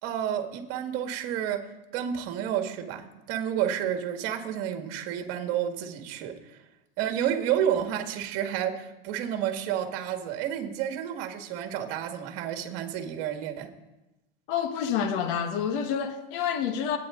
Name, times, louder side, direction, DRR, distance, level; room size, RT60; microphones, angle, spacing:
voice 1, 0.0-6.4 7.0-13.7, right 10 dB, 50° right, 1.9 m, -30 dB
voice 2, 14.5-17.0, left 8 dB, 60° left, 1.5 m, -28 dB
24.0 x 9.1 x 3.8 m
supercardioid pair, 130°, 30 cm